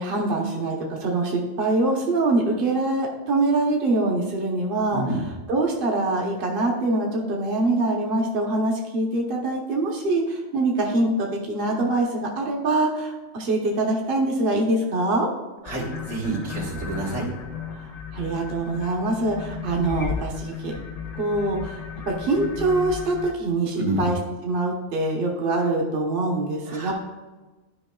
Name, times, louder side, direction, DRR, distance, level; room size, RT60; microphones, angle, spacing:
voice 1, 0.0-5.0 5.5-15.3 18.1-20.7 21.2-21.8 22.1-24.2 24.4-26.9, right 2 dB, 45° right, -1 dB, 1.1 m, -24 dB
voice 2, 4.9-5.3 15.6-17.3 23.8-24.0 26.7-26.9, right 2 dB, 75° right, -4 dB, 2.2 m, -28 dB
sound 1, 15.6-23.3, left 7 dB, 40° left, 0.7 m, -35 dB
12.5 x 5.2 x 2.3 m, 1.2 s
omnidirectional pair, 1.4 m